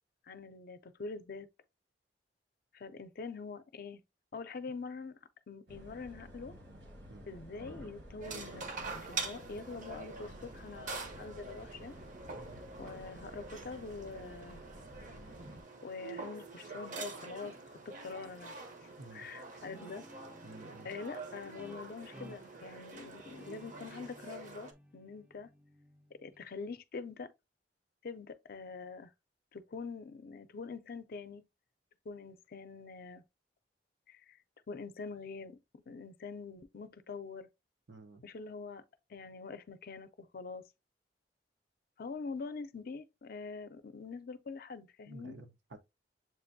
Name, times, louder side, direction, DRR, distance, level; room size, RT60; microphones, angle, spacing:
voice 1, 0.2-1.5 2.7-4.0 4.3-5.2 5.5-6.5 7.3-12.0 12.8-14.6 15.8-17.5 17.9-18.6 19.1-20.0 20.8-25.5 26.2-27.3 28.0-29.1 29.5-31.4 32.1-33.2 34.1-34.4 34.7-37.5 38.2-38.8 39.1-40.6 42.0-45.4, left 4 dB, 55° left, 0.5 m, -44 dB
sound 1, 5.7-15.6, equal, 70° right, 1.5 m, -52 dB
sound 2, 8.2-24.7, right 3 dB, 45° right, 0.7 m, -46 dB
voice 2, 19.0-19.3 20.4-20.9 37.9-38.2 45.1-45.8, right 2 dB, 90° right, 0.8 m, -51 dB
Guitar, 19.6-26.8, right 1 dB, 10° right, 0.4 m, -57 dB
7.5 x 2.6 x 2.6 m
head